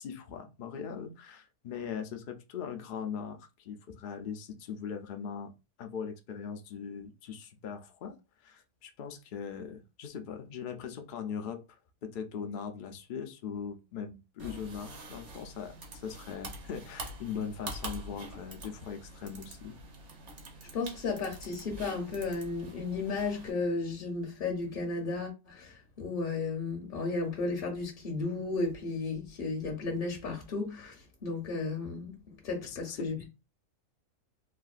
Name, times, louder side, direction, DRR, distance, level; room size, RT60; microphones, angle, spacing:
voice 1, 0.0-5.5 5.8-8.2 8.4-19.8 32.6-33.1, left 7 dB, 80° left, 0.4 m, -40 dB
sound 1, 14.4-23.5, right 1 dB, 60° right, 1.1 m, -45 dB
voice 2, 20.7-33.3, left 3 dB, 50° left, 0.7 m, -34 dB
3.4 x 2.4 x 2.4 m
omnidirectional pair, 1.5 m